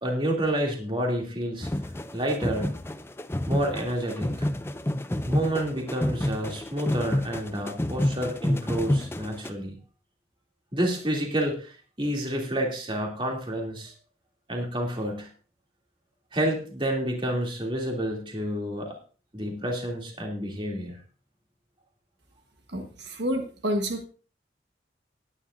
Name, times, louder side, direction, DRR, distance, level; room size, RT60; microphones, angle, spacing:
voice 1, 0.0-1.7 2.1-2.8 3.5-4.5 5.2-9.7 10.7-13.9 14.5-15.3 16.3-18.9 19.3-21.0, right 1 dB, 30° right, 0 dB, 2.9 m, -29 dB
sound 1, 1.6-9.5, left 1 dB, 15° left, 0.4 m, -29 dB
voice 2, 22.7-24.1, equal, 75° right, 4 dB, 1.4 m, -29 dB
18.5 x 10.0 x 2.6 m, 0.37 s
head